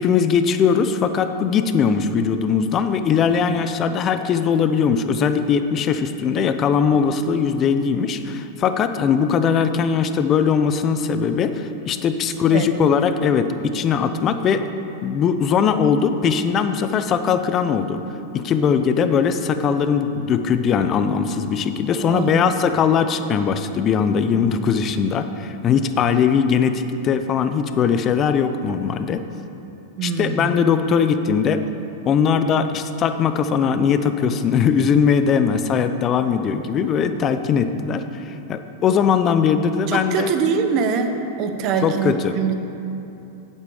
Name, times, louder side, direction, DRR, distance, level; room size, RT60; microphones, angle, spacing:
voice 1, 0.0-14.6 15.0-18.0 18.3-29.2 30.0-31.6 32.1-40.3 41.8-42.3, left 6 dB, 30° left, 9 dB, 0.6 m, -20 dB
voice 2, 21.9-22.6 30.0-30.6 39.9-42.5, right 5 dB, 45° right, 6 dB, 1.1 m, -23 dB
8.4 x 8.2 x 7.0 m, 2.9 s
hypercardioid pair, 125°, 0 cm